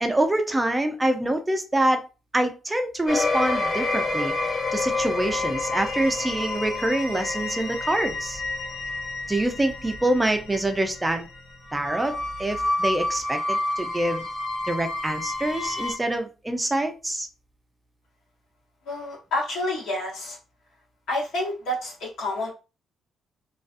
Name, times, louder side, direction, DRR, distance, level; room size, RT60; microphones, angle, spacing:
voice 1, 0.0-2.0 2.3-8.4 9.3-11.3 11.7-14.3 14.7-17.3, right 1 dB, 15° right, 0.4 m, -25 dB
sound 1, 3.1-15.9, left 2 dB, 45° left, 0.5 m, -29 dB
voice 2, 18.9-20.4 21.1-22.5, left 1 dB, 80° left, 1.1 m, -29 dB
2.3 x 2.3 x 2.5 m
cardioid pair, 90°, 0 cm